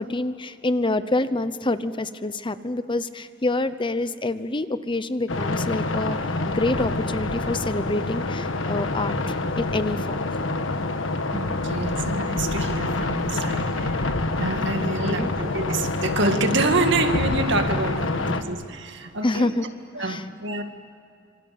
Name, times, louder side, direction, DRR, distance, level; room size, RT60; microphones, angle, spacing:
voice 1, 0.0-6.2 6.5-9.1 9.6-10.3 10.7-10.8 14.8-15.3 19.2-19.7 20.0-20.2, left 2 dB, 25° left, 13 dB, 0.8 m, -27 dB
sound 1, 5.3-18.4, left 2 dB, 75° left, 1.5 m, -26 dB
voice 2, 11.3-19.5 19.9-20.6, right 3 dB, 65° right, 6 dB, 2.1 m, -27 dB
26.5 x 25.5 x 7.6 m, 2.5 s
head